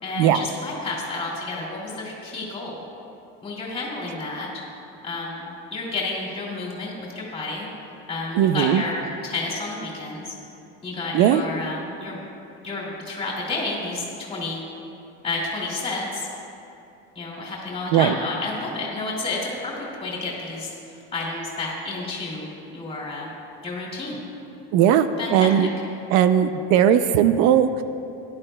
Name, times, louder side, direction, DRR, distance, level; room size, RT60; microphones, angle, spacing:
voice 1, 0.0-2.8 3.4-4.5 5.0-7.7 8.1-10.3 10.8-12.2 12.6-14.6 15.2-16.3 17.1-19.7 20.0-20.7 21.1-22.5 22.7-23.3 23.6-24.2 25.2-25.5, left 3 dB, 20° left, -4 dB, 2.4 m, -30 dB
voice 2, 8.3-8.8 11.1-11.4 17.9-18.2 24.7-25.7 26.1-27.8, right 9 dB, 70° right, 10 dB, 0.5 m, -18 dB
18.0 x 11.0 x 2.2 m, 2.7 s
cardioid pair, 160°, 29 cm